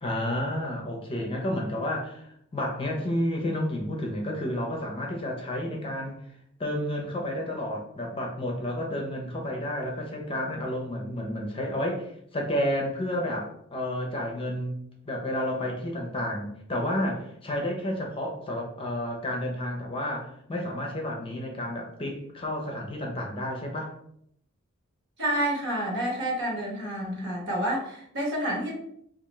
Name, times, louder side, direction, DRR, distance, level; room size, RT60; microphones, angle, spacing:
voice 1, 0.0-6.2 6.6-14.7 15.1-23.9, left 1 dB, 25° left, 1 dB, 0.6 m, -31 dB
voice 2, 25.2-28.8, right 1 dB, 60° right, -2 dB, 1.2 m, -29 dB
3.6 x 2.5 x 3.1 m, 0.70 s
head